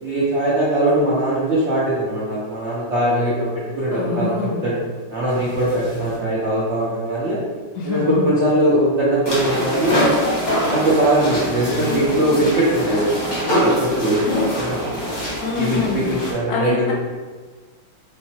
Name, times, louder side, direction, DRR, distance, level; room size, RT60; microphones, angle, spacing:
voice 1, 0.0-4.3 4.6-4.8 5.1-7.4 7.8-10.0 10.6-13.1 13.6-14.2 14.6-15.0 15.6-16.9, right 1 dB, 90° right, -7 dB, 0.6 m, -20 dB
voice 2, 3.9-4.7 7.8-8.2 15.4-16.0 16.5-16.9, left 4 dB, 65° left, -2 dB, 1.0 m, -25 dB
sound 1, 5.3-6.2 9.3-16.3, equal, 30° left, 0.8 m, -24 dB
3.4 x 3.2 x 2.8 m, 1.4 s
omnidirectional pair, 2.3 m